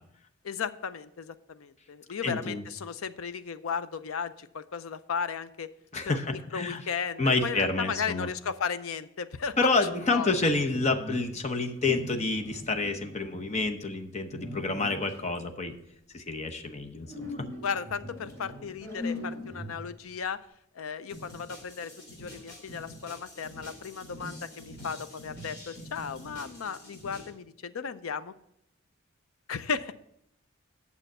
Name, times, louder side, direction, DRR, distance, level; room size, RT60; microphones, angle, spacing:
voice 1, 0.4-5.7 6.5-9.6 10.1-10.3 17.6-20.5 20.7-21.9 22.2-28.3 29.5-29.9, left 6 dB, 90° left, 14 dB, 0.5 m, -35 dB
voice 2, 2.2-2.6 5.9-6.8 7.2-8.3 9.6-15.7 16.1-17.5, left 3 dB, 35° left, 5 dB, 0.8 m, -28 dB
sound 1, 9.4-11.4 11.8-13.7 14.3-15.4 17.1-20.1, left 1 dB, 15° left, 3.4 m, -41 dB
sound 2, 21.1-27.3, equal, 50° left, 3.6 m, -46 dB
9.1 x 7.1 x 5.4 m, 0.76 s
head